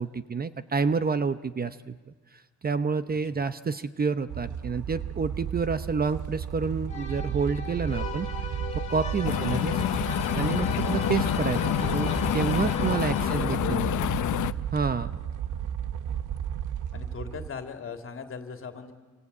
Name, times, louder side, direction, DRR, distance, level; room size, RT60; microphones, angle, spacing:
voice 1, 0.0-2.0 2.6-8.3 8.9-9.7 10.4-13.8 14.7-15.2, right 5 dB, 30° right, 12 dB, 0.8 m, -28 dB
sound 1, 4.3-17.5, right 9 dB, 85° right, 1.0 m, -34 dB
sound 2, 6.9-13.7, left 4 dB, 25° left, 3.2 m, -37 dB
sound 3, 9.2-14.5, left 12 dB, 85° left, 0.8 m, -27 dB
voice 2, 9.2-9.6 12.6-14.0 16.9-18.9, left 5 dB, 45° left, 5 dB, 2.9 m, -39 dB
27.5 x 25.5 x 8.4 m, 1.3 s
cardioid pair, 125°, 29 cm